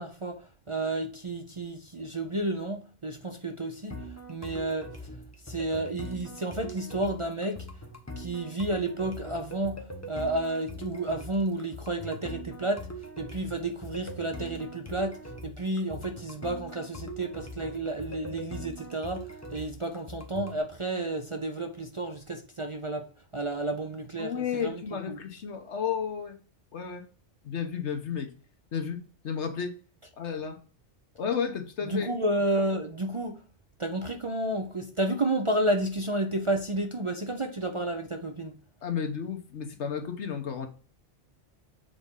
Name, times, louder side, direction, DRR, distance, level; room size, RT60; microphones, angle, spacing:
voice 1, 0.0-4.9 5.5-7.7 8.2-12.9 13.2-23.1 23.3-25.2 31.8-33.4 33.8-38.5, right 1 dB, 35° right, 0.6 m, -31 dB
sound 1, 3.9-20.6, equal, 15° left, 0.9 m, -42 dB
voice 2, 24.2-26.4 26.7-27.0 27.4-28.3 28.7-29.8 30.2-30.6 31.2-32.2 38.8-40.7, left 7 dB, 75° left, 1.3 m, -32 dB
6.9 x 4.1 x 3.7 m
omnidirectional pair, 1.2 m